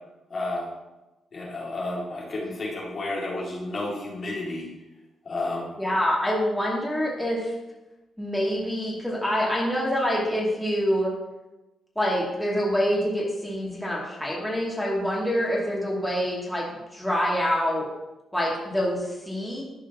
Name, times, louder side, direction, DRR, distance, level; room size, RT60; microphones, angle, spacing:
voice 1, 0.3-0.7 1.3-4.7 5.2-5.7, left 2 dB, 55° left, -4 dB, 2.5 m, -31 dB
voice 2, 5.8-7.5 8.2-11.1 12.0-16.7 16.9-17.9 18.3-19.6, equal, 5° left, -5 dB, 2.6 m, -26 dB
12.0 x 4.9 x 3.0 m, 1.0 s
cardioid pair, 65°, 0 cm